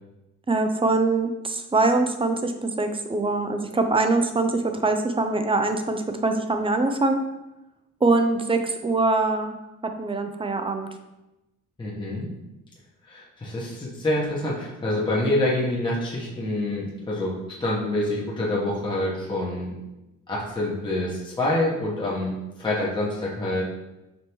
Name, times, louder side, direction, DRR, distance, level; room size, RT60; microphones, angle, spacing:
voice 1, 0.5-7.2 8.0-9.6 9.8-10.9, right 3 dB, 20° right, 6 dB, 0.4 m, -23 dB
voice 2, 11.8-12.3 13.0-17.3 17.6-19.7 20.3-23.6, left 1 dB, 15° left, -6 dB, 1.1 m, -26 dB
5.2 x 2.9 x 3.0 m, 0.96 s
cardioid pair, 90°, 30 cm